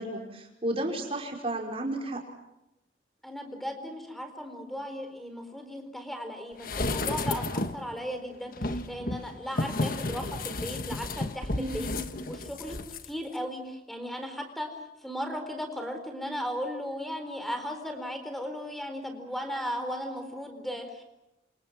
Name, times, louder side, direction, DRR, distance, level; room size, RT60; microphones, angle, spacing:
voice 1, 0.0-2.2 11.5-12.0, right 1 dB, 30° right, 1 dB, 5.5 m, -33 dB
voice 2, 3.2-11.9 12.3-12.8 13.1-14.7 15.0-21.0, equal, ahead, 7 dB, 4.2 m, -36 dB
sound 1, 6.6-7.9 8.5-13.1 13.4-13.5, left 2 dB, 50° left, 1.4 m, -32 dB
28.0 x 27.5 x 6.2 m, 0.91 s
head